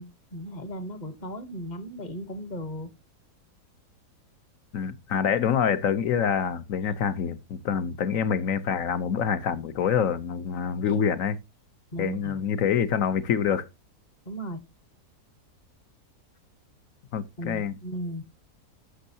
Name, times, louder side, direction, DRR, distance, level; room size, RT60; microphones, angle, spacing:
voice 1, 0.0-2.9 10.9-11.0 11.9-12.4 14.3-14.6 17.4-18.2, equal, 35° left, 1.0 m, -36 dB
voice 2, 4.7-11.4 12.0-13.7 17.1-17.7, left 7 dB, 60° left, 1.1 m, -26 dB
11.5 x 6.4 x 2.7 m
omnidirectional pair, 1.7 m